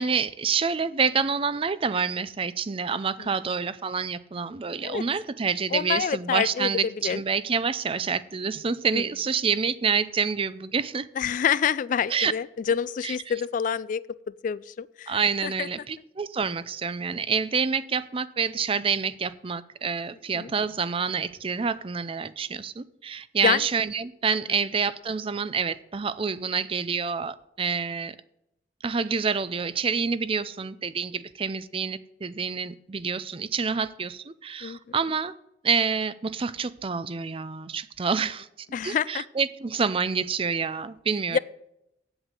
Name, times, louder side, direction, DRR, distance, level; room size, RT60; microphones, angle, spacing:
voice 1, 0.0-11.1 12.1-12.3 13.0-13.2 15.1-28.2 28.8-35.3 35.6-41.4, right 5 dB, 30° right, 16 dB, 0.5 m, -27 dB
voice 2, 5.7-6.7 7.0-7.2 8.9-9.0 11.2-14.0 14.4-15.7 20.3-20.5 23.4-23.6 34.6-34.8 38.7-39.2 41.3-41.4, left 7 dB, 45° left, 19 dB, 0.3 m, -27 dB
8.3 x 8.0 x 7.4 m, 0.82 s
head